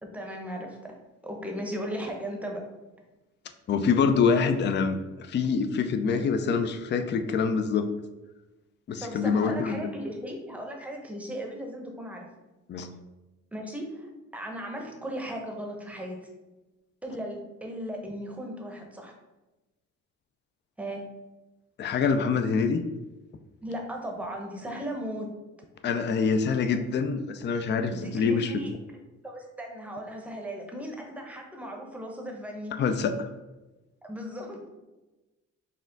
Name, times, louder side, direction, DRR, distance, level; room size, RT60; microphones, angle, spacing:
voice 1, 0.0-1.0 1.2-2.7 9.0-12.3 13.5-16.2 17.0-19.1 20.8-21.0 23.6-25.3 27.9-28.7 29.2-32.8 34.0-34.7, equal, 5° right, 1 dB, 0.8 m, -36 dB
voice 2, 3.7-7.9 8.9-9.9 12.7-12.9 21.8-22.8 25.8-28.6 32.8-33.3, left 5 dB, 35° left, 8 dB, 0.4 m, -25 dB
4.3 x 2.4 x 3.8 m, 1.1 s
cardioid pair, 90°, 30 cm